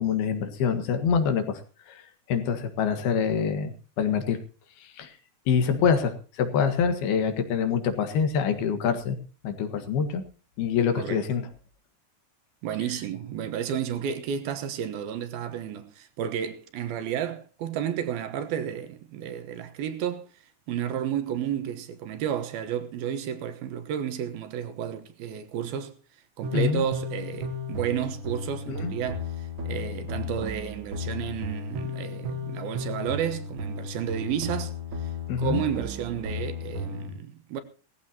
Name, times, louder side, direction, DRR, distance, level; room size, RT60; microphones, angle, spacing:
voice 1, 0.0-1.6 1.9-2.0 2.3-4.4 5.0-5.1 5.5-9.2 9.4-10.2 10.6-11.5 26.5-26.8 28.7-28.9 35.3-35.6, left 6 dB, 75° left, 3.6 m, -25 dB
voice 2, 12.6-20.2 20.7-25.9 26.4-34.7 35.0-35.1 35.4-37.6, right 9 dB, 75° right, 3.0 m, -32 dB
sound 1, 26.4-37.1, left 3 dB, 50° right, 1.6 m, -34 dB
19.0 x 15.0 x 2.9 m
omnidirectional pair, 4.5 m